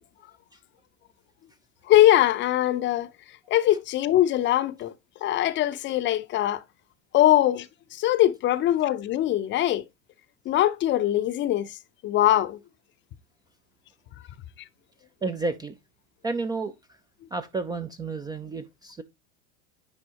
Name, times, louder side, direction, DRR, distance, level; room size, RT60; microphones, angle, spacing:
voice 1, 1.9-3.1 3.5-4.9 5.2-6.6 7.1-7.7 7.9-9.8 10.5-11.7 12.0-12.6, left 13 dB, 30° left, 0.6 m, -22 dB
voice 2, 15.2-15.8 16.2-17.0 17.3-19.0, right 3 dB, 10° right, 0.4 m, -31 dB
9.8 x 4.1 x 2.8 m
hypercardioid pair, 90°, 37 cm